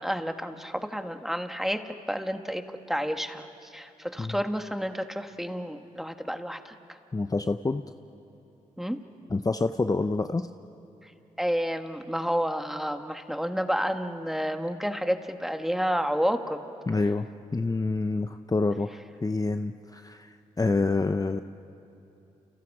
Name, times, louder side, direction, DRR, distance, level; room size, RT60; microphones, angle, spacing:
voice 1, 0.0-1.8 2.1-2.6 2.9-6.7 8.8-9.0 11.4-16.6, equal, ahead, 6 dB, 1.8 m, -30 dB
voice 2, 7.1-7.8 9.3-10.5 16.9-17.3 17.5-21.4, left 3 dB, 25° left, 9 dB, 0.7 m, -27 dB
29.5 x 29.5 x 4.9 m, 2.9 s
supercardioid pair, 50°, 14 cm